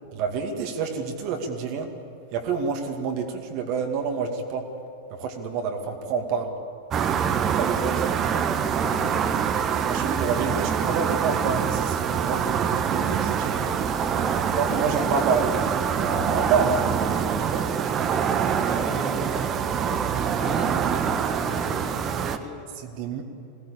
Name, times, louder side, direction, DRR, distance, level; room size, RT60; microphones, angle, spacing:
voice 1, 0.1-1.9 2.3-4.7 5.1-6.6 7.5-7.9 9.9-13.7 14.5-15.5 16.0-17.7 22.8-23.2, right 5 dB, 45° right, 4 dB, 2.3 m, -28 dB
sound 1, 6.9-22.4, right 7 dB, 30° right, 1.2 m, -25 dB
voice 2, 7.2-7.5 7.8-8.1 8.5-9.4 13.6-13.8 14.2-15.2 18.8-22.7, left 4 dB, 30° left, 2 dB, 3.0 m, -39 dB
21.0 x 17.5 x 8.6 m, 2.7 s
figure-of-eight pair, 90°, 0 cm